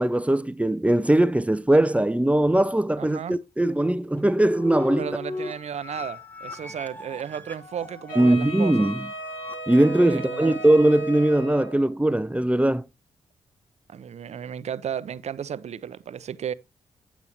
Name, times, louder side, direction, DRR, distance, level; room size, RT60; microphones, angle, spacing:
voice 1, 0.0-5.1 8.2-9.1 9.7-12.8, right 1 dB, 10° right, 0.6 m, -20 dB
voice 2, 3.0-3.4 5.0-8.9 10.1-10.6 13.9-16.5, right 8 dB, 60° right, 0.6 m, -34 dB
sound 1, 4.2-10.7, left 2 dB, 15° left, 1.3 m, -37 dB
Wind instrument woodwind instrument, 8.1-11.9, right 1 dB, 85° left, 3.1 m, -37 dB
8.7 x 8.1 x 3.0 m
hypercardioid pair, 40°, 13 cm